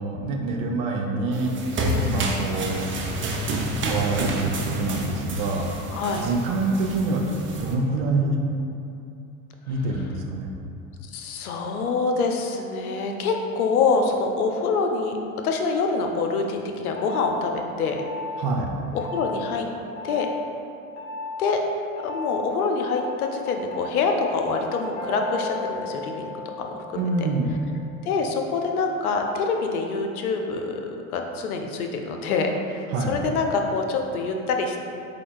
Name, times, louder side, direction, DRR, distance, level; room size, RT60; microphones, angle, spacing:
voice 1, 0.0-1.5 2.0-2.9 3.7-5.7 6.2-8.4 9.7-10.5 18.4-18.7 26.9-27.5 32.9-33.2, right 2 dB, 70° right, 1 dB, 0.7 m, -26 dB
sound 1, 1.3-7.7, right 1 dB, 30° right, 0.7 m, -29 dB
voice 2, 5.9-6.3 11.1-15.2 15.4-18.0 18.9-19.7 20.0-20.3 21.4-21.6 22.0-26.3 26.6-26.8 28.1-34.8, left 4 dB, 90° left, 3 dB, 0.6 m, -25 dB
sound 2, 17.0-17.3 18.0-18.3 19.0-19.3 20.0-20.3 21.0-21.3 22.0-22.3 23.0-28.0, left 3 dB, 40° left, 1.2 m, -35 dB
4.3 x 2.4 x 4.6 m, 2.7 s
hypercardioid pair, 80°, 43 cm